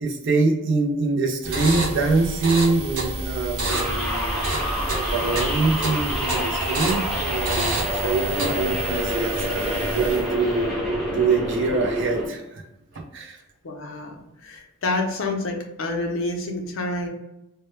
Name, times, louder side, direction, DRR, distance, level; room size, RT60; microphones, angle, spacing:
voice 1, 0.0-4.6 5.1-10.8 11.1-12.6 12.9-13.4, right 3 dB, 55° right, 3 dB, 0.4 m, -24 dB
sound 1, 1.4-10.4, right 2 dB, 80° right, 0.9 m, -29 dB
sound 2, 3.7-12.3, equal, ahead, 0.5 m, -27 dB
voice 2, 13.6-17.1, left 2 dB, 60° left, 2 dB, 0.5 m, -28 dB
2.1 x 2.1 x 2.9 m, 0.90 s
head